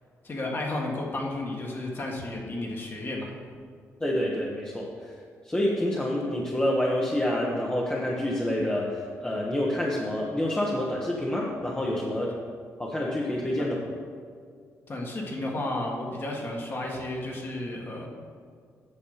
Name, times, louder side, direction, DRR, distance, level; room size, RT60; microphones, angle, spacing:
voice 1, 0.2-3.3 13.6-13.7 14.9-18.1, left 2 dB, 40° left, -1 dB, 2.0 m, -32 dB
voice 2, 4.0-4.9 5.4-12.3 12.8-13.8, left 1 dB, 15° left, -4 dB, 1.2 m, -27 dB
8.7 x 6.4 x 5.7 m, 2.1 s
cardioid pair, 85°, 6 cm